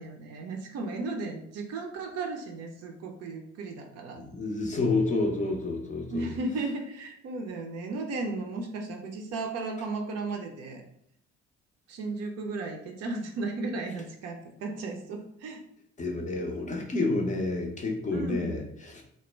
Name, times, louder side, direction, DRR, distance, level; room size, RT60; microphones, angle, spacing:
voice 1, 0.0-4.2 6.1-10.8 11.9-15.6 18.1-18.5, right 3 dB, 45° right, 3 dB, 0.5 m, -35 dB
voice 2, 4.2-6.3 16.0-19.0, left 2 dB, 20° left, 1 dB, 0.5 m, -29 dB
2.1 x 2.1 x 3.2 m, 0.70 s
figure-of-eight pair, 50°, 35 cm